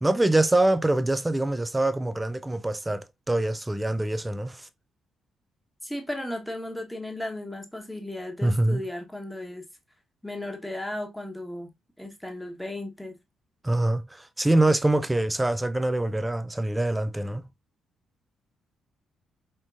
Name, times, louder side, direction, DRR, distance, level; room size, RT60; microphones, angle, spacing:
voice 1, 0.0-4.7 8.4-8.8 13.6-17.5, right 2 dB, 15° right, 0.5 m, -24 dB
voice 2, 5.8-9.6 10.2-11.7 12.0-13.2, left 1 dB, 5° left, 1.2 m, -35 dB
4.9 x 3.7 x 2.5 m
figure-of-eight pair, 40°, 0 cm